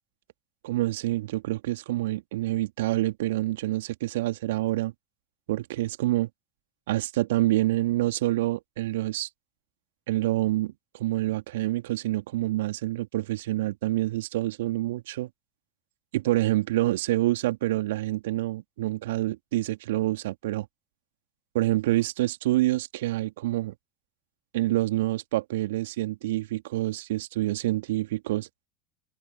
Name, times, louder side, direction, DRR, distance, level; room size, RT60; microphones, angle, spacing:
voice 1, 0.6-4.9 5.5-6.3 6.9-9.3 10.1-15.3 16.1-20.7 21.5-23.7 24.5-28.5, right 16 dB, 70° right, 2.6 m, -27 dB
figure-of-eight pair, 70°, 0 cm